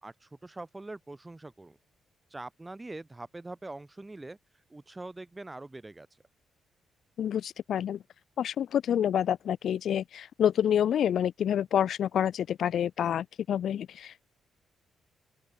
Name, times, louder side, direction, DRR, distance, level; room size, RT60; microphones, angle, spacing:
voice 1, 0.0-1.8 2.3-4.4 4.7-6.1, right 2 dB, 15° right, 2.6 m, -43 dB
voice 2, 7.2-8.0 8.4-14.2, left 9 dB, 65° left, 0.4 m, -28 dB
open air
cardioid pair, 135°, 0 cm